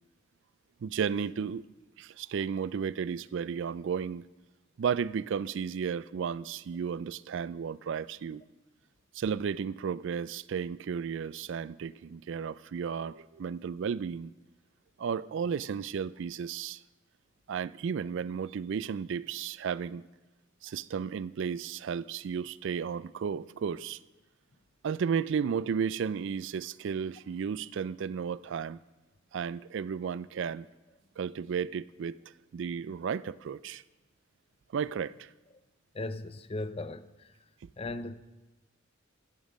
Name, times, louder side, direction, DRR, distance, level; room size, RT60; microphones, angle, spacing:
voice 1, 0.8-1.6 2.0-4.2 4.8-8.4 9.1-14.3 15.0-16.8 17.5-20.0 20.6-24.0 24.8-28.8 29.3-30.7 31.2-32.2 32.5-33.8 34.7-35.3, right 7 dB, 65° right, 0.3 m, -33 dB
voice 2, 35.9-37.0 37.8-38.2, left 2 dB, 30° left, 0.5 m, -36 dB
15.0 x 7.3 x 6.3 m
head